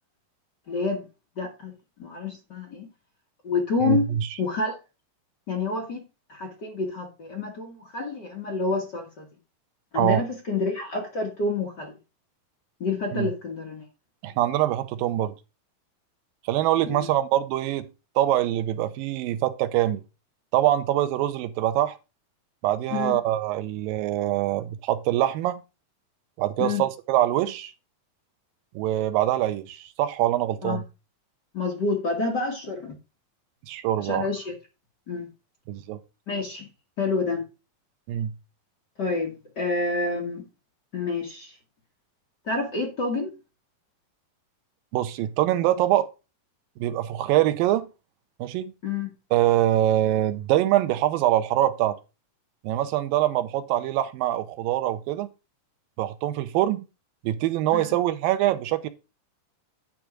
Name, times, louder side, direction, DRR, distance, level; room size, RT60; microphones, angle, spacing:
voice 1, 0.7-1.0 1.4-1.7 2.0-2.9 3.4-4.0 4.4-4.8 5.5-6.0 6.3-9.3 9.9-11.9 12.8-13.8 16.8-17.1 22.9-23.2 26.6-26.8 30.6-30.8 31.5-33.0 34.0-34.5 35.1-35.3 36.3-36.7 37.0-37.5 39.0-40.4 40.9-41.5 42.4-43.3 48.8-49.1 57.7-57.9, left 3 dB, 50° left, 1.3 m, -28 dB
voice 2, 3.8-4.3 10.0-10.2 13.1-13.3 14.2-15.3 16.5-17.9 18.2-20.0 20.5-22.0 22.6-25.6 26.4-27.7 28.8-30.8 33.7-34.3 35.7-36.0 38.1-38.3 44.9-46.1 46.8-47.9 48.4-48.7 49.3-52.0 52.6-55.3 56.0-56.9 57.2-58.9, right 13 dB, 85° right, 2.4 m, -24 dB
10.0 x 3.5 x 6.1 m
omnidirectional pair, 4.1 m